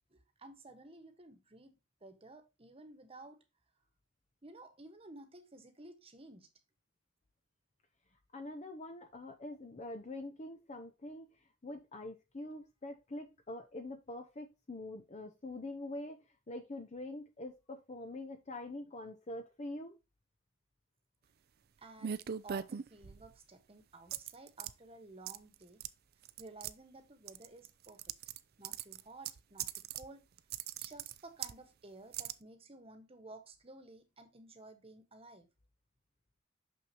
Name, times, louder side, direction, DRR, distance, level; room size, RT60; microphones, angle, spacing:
voice 1, 0.1-3.4 4.4-6.5 21.8-22.2 22.4-25.8 26.4-28.1 28.6-30.3 30.8-35.5, right 2 dB, 30° right, 1.2 m, -54 dB
voice 2, 8.3-11.3 11.6-16.2 16.5-20.0, left 2 dB, 35° left, 0.7 m, -45 dB
sound 1, 22.0-23.3 24.1-24.7 25.3-25.5 25.8-25.9 26.2-26.7 27.3-28.4 28.6-30.1 30.4-31.6 32.1-32.3, right 9 dB, 50° right, 0.4 m, -40 dB
6.2 x 6.1 x 2.8 m
head